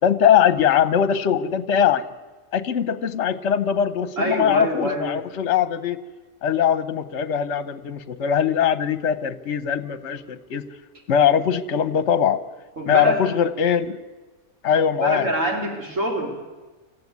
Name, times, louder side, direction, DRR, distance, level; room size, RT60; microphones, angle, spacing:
voice 1, 0.0-2.0 2.5-6.0 6.4-10.6 11.1-12.4 12.8-14.0 14.6-15.3, left 8 dB, 55° left, 14 dB, 1.2 m, -21 dB
voice 2, 4.2-5.1 12.8-13.2 15.0-16.4, equal, 60° right, 2 dB, 3.4 m, -24 dB
25.0 x 15.0 x 9.6 m, 1.3 s
omnidirectional pair, 1.5 m